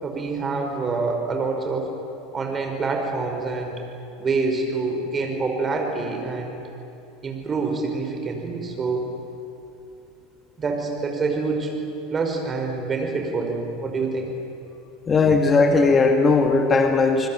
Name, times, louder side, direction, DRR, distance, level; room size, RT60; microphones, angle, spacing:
voice 1, 0.0-1.9 2.3-3.8 4.2-6.5 7.2-9.0 10.6-11.8 12.1-14.3, right 3 dB, 25° right, 3 dB, 5.3 m, -26 dB
voice 2, 15.1-17.3, left 4 dB, 25° left, 5 dB, 2.0 m, -18 dB
27.0 x 20.5 x 9.0 m, 2.7 s
figure-of-eight pair, 75°, 0 cm